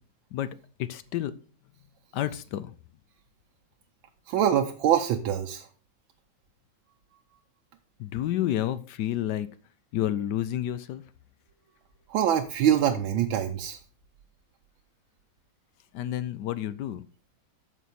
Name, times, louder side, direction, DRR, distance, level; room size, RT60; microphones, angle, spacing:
voice 1, 0.8-1.3 2.1-2.7 8.0-9.5 9.9-11.0 15.9-17.0, left 12 dB, 75° left, 14 dB, 1.1 m, -30 dB
voice 2, 4.3-5.7 12.1-13.8, right 10 dB, 85° right, 4 dB, 1.5 m, -24 dB
9.2 x 6.3 x 4.1 m, 0.38 s
omnidirectional pair, 2.1 m